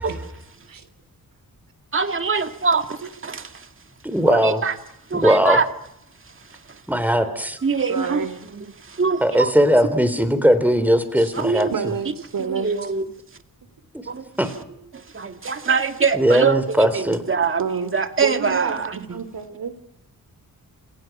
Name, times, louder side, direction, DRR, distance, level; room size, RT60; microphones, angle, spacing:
voice 1, 1.9-3.7 4.3-4.7 5.1-5.7 6.7-6.8 7.6-8.3 8.5-9.5 11.3-11.7 12.4-13.1 14.1-14.2 14.9-19.2, right 5 dB, 35° right, 2.1 m, -24 dB
voice 2, 4.0-4.6 5.1-5.6 6.9-7.6 9.2-11.7 14.4-14.5 16.1-17.2, equal, 5° right, 3.7 m, -18 dB
voice 3, 7.9-8.4 11.2-11.3 11.7-12.9 17.6-17.9 18.2-19.7, right 6 dB, 70° right, 3.5 m, -28 dB
29.5 x 27.0 x 6.1 m
wide cardioid pair, 140°, 35 cm